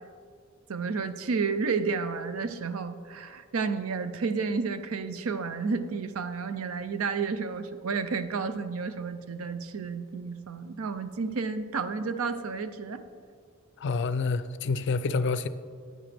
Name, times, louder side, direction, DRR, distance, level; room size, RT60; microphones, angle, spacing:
voice 1, 0.7-13.0, right 5 dB, 85° right, 0.5 m, -31 dB
voice 2, 13.8-15.5, left 4 dB, 55° left, 0.4 m, -28 dB
9.9 x 9.2 x 3.4 m
head